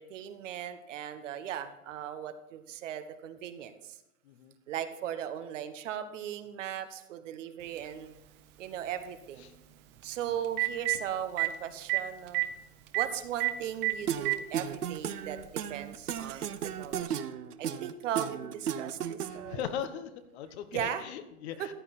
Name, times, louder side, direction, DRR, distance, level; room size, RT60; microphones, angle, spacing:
voice 1, 0.0-4.0 4.7-8.1 8.6-9.5 10.0-12.4 12.9-17.2 17.6-19.6 20.7-21.0 21.6-21.7, right 10 dB, 55° right, 9 dB, 1.3 m, -38 dB
Telephone, 7.8-7.9 10.0-10.1 10.4-11.0 11.4-11.5 11.9-12.0 12.3-12.5 12.9-13.1 13.4-13.5 13.8-14.4 15.4-15.5 16.9-17.0, right 23 dB, 25° right, 0.7 m, -27 dB
sound 1, 14.1-19.6, right 9 dB, 85° right, 0.9 m, -35 dB
voice 2, 19.3-21.7, left 8 dB, 45° left, 10 dB, 1.2 m, -39 dB
14.5 x 9.1 x 4.3 m, 0.89 s
hypercardioid pair, 130°, 44 cm